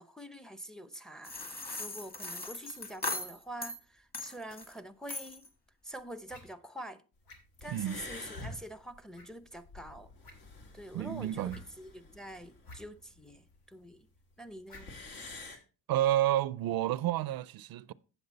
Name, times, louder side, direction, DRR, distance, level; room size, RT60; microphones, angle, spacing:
voice 1, 0.0-5.5 5.8-7.0 7.6-10.1 10.7-14.1 14.4-14.9, right 1 dB, ahead, 0.6 m, -46 dB
sound 1, 1.2-3.8 4.1-4.7 5.1-5.5, left 2 dB, 25° left, 1.8 m, -39 dB
sound 2, 5.4-5.5 6.2-6.5 7.2-7.6 8.3-8.6 9.1-9.3 9.6-9.7 10.2-10.6 11.5-11.7 12.6-12.8 13.0-13.1 14.7-14.9, left 1 dB, 85° left, 2.6 m, -47 dB
sound 3, 7.3-7.4 7.6-13.6 13.9-14.0 14.2-14.3 14.5-15.6, left 3 dB, 70° left, 2.0 m, -49 dB
voice 2, 10.9-11.6 15.9-17.9, right 13 dB, 75° right, 0.5 m, -30 dB
8.0 x 7.6 x 4.0 m
cardioid pair, 85°, 36 cm